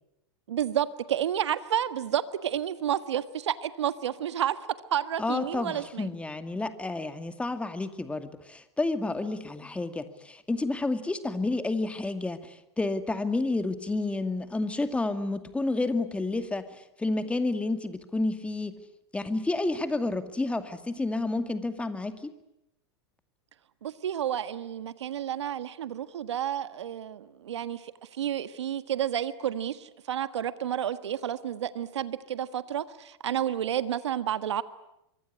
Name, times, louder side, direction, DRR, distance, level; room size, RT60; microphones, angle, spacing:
voice 1, 0.5-4.6 4.9-6.1 23.8-34.6, right 10 dB, 85° right, 12 dB, 1.6 m, -30 dB
voice 2, 5.2-18.8 19.1-22.3, left 2 dB, 10° left, 9 dB, 2.3 m, -30 dB
25.5 x 24.0 x 9.8 m, 0.84 s
hypercardioid pair, 120°, 14 cm